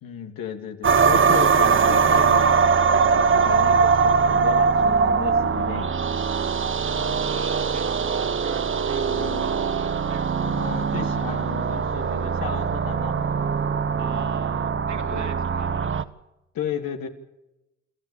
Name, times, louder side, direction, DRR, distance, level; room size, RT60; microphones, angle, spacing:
voice 1, 0.0-5.9 7.1-7.2 9.0-9.5 10.4-13.3 15.1-15.3 16.5-17.1, left 7 dB, 80° left, 2.7 m, -34 dB
sound 1, 0.8-16.0, right 5 dB, 35° right, 1.0 m, -21 dB
voice 2, 6.8-10.7 14.0-16.1, right 7 dB, 55° right, 3.0 m, -39 dB
26.5 x 13.5 x 8.5 m
cardioid pair, 75°, 34 cm